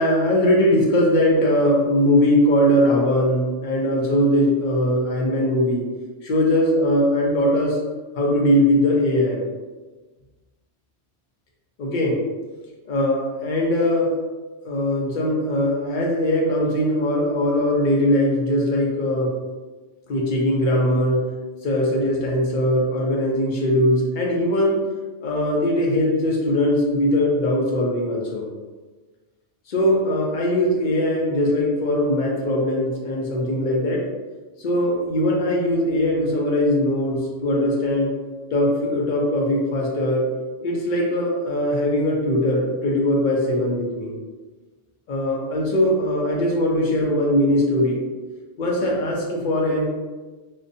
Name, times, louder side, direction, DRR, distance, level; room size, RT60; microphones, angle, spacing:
voice 1, 0.0-5.8 6.2-7.8 8.2-9.4 11.8-12.2 12.8-14.1 14.6-19.3 20.1-21.2 21.6-24.8 25.2-28.5 29.7-34.0 34.6-38.1 38.5-40.2 40.6-44.1 45.1-48.0 48.6-49.9, left 1 dB, 55° left, -2 dB, 0.5 m, -20 dB
2.5 x 2.1 x 2.6 m, 1.3 s
omnidirectional pair, 1.2 m